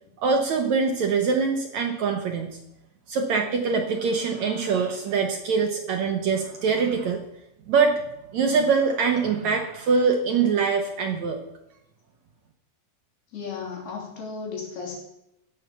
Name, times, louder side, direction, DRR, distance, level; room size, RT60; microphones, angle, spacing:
voice 1, 0.2-2.6 3.1-7.2 7.7-8.0 8.3-11.4, right 5 dB, 65° right, 4 dB, 1.9 m, -23 dB
voice 2, 13.3-15.0, left 5 dB, 75° left, 0 dB, 5.1 m, -34 dB
16.5 x 7.4 x 6.9 m, 0.85 s
omnidirectional pair, 4.5 m